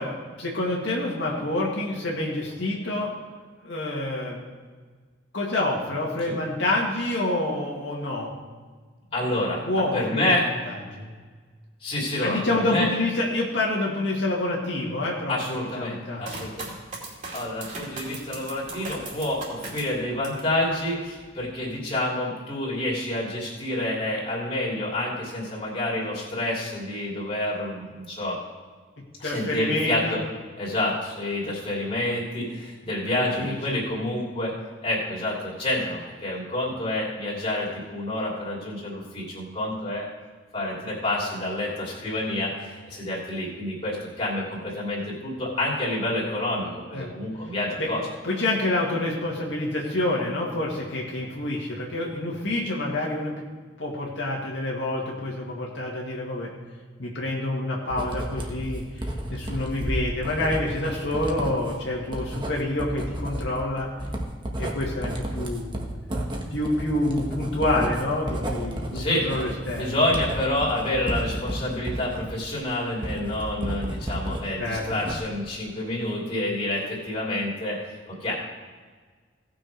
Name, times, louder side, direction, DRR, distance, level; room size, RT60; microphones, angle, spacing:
voice 1, 0.0-3.1 3.6-4.4 5.3-8.3 9.6-10.4 10.6-11.1 12.2-16.5 29.2-30.2 33.1-33.8 46.9-47.1 47.8-47.9 48.2-53.5 53.8-56.5 57.0-63.9 64.6-65.8 66.5-69.9 74.6-74.9, left 2 dB, 80° left, -3 dB, 2.0 m, -28 dB
voice 2, 9.1-9.6 9.9-10.5 11.8-12.9 15.3-16.7 17.3-28.4 29.2-30.2 30.6-34.5 34.8-40.1 40.5-48.0 68.9-69.3 69.8-78.3, left 1 dB, 30° left, -5 dB, 3.0 m, -28 dB
sound 1, 16.2-20.5 21.0-21.6, right 2 dB, 40° right, 2.5 m, -38 dB
Writing, 57.9-74.4 74.8-75.5, right 1 dB, 25° right, 1.3 m, -32 dB
17.5 x 6.2 x 4.7 m, 1.5 s
head